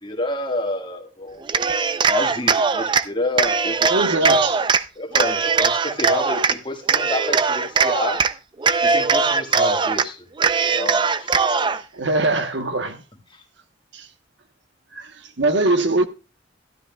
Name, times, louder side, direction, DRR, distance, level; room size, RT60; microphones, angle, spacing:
voice 1, 0.0-1.4 2.1-4.1 4.9-8.2 8.8-10.2 10.6-11.4 13.3-13.4, left 1 dB, 25° left, 1.6 m, -29 dB
Cheering, 1.4-3.0 3.4-4.8 5.1-6.6 6.9-8.3 8.6-10.1 10.4-11.8, right 5 dB, 25° right, 0.4 m, -20 dB
voice 2, 3.9-4.6 11.9-13.0 13.9-14.1 14.9-16.1, right 2 dB, 70° right, 1.1 m, -22 dB
13.0 x 12.0 x 2.2 m
head